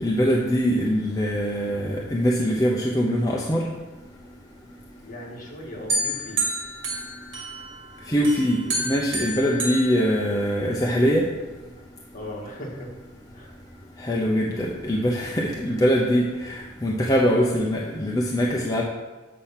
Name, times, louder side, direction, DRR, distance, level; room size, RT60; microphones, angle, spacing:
voice 1, 0.0-3.6 8.1-11.3 14.0-18.8, equal, 20° left, -2 dB, 0.7 m, -23 dB
voice 2, 5.0-6.4 12.1-12.9 13.3-13.5, left 1 dB, 45° left, -2 dB, 1.7 m, -38 dB
sound 1, 5.9-7.8 8.2-10.8, right 1 dB, 70° right, 2.1 m, -29 dB
8.3 x 4.3 x 5.7 m, 1.2 s
head